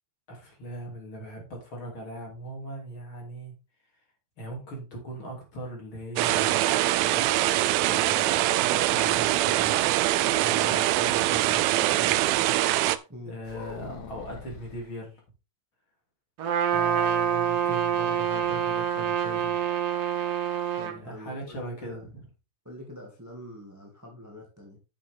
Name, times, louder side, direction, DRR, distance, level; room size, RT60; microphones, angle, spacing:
voice 1, 0.3-3.5 4.4-7.3 7.8-10.0 10.2-12.2 13.3-15.2 16.7-19.6 20.9-22.2, equal, 35° left, 0 dB, 3.1 m, -39 dB
sound 1, 6.2-13.0, right 15 dB, 85° right, 2.2 m, -23 dB
sound 2, 13.4-14.9 16.6-17.6 17.9-18.0 18.3-18.6, left 5 dB, 85° left, 4.0 m, -43 dB
Trumpet, 16.4-21.0, right 9 dB, 65° right, 1.6 m, -26 dB
voice 2, 20.8-22.1 22.6-24.8, left 1 dB, 10° right, 0 dB, 1.2 m, -45 dB
10.5 x 7.0 x 3.6 m, 0.29 s
omnidirectional pair, 4.8 m